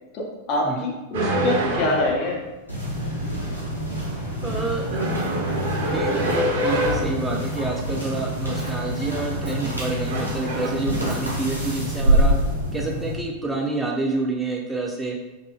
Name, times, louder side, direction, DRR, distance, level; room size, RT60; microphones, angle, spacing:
voice 1, 0.1-2.4, left 2 dB, 40° left, -1 dB, 0.8 m, -25 dB
sound 1, 1.1-2.4 4.8-7.2 9.3-9.7 10.1-10.7, equal, 60° right, 0.7 m, -25 dB
sound 2, 2.7-13.1, equal, 90° right, 1.0 m, -26 dB
voice 2, 4.4-5.5 5.9-12.3 12.7-15.2, right 3 dB, 10° right, -2 dB, 0.4 m, -28 dB
2.7 x 2.6 x 3.6 m, 1.1 s
figure-of-eight pair, 90°, 0 cm